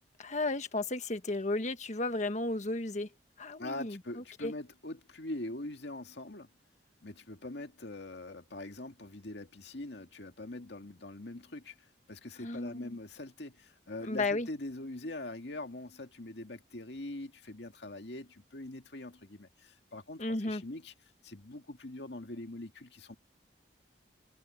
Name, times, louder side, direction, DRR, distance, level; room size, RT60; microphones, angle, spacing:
voice 1, 0.2-3.1 3.4-4.5 12.4-12.9 14.0-14.5 20.2-20.6, left 2 dB, 40° left, 1.5 m, -34 dB
voice 2, 3.6-6.5 7.0-20.9 21.2-23.1, left 2 dB, 70° left, 2.1 m, -43 dB
head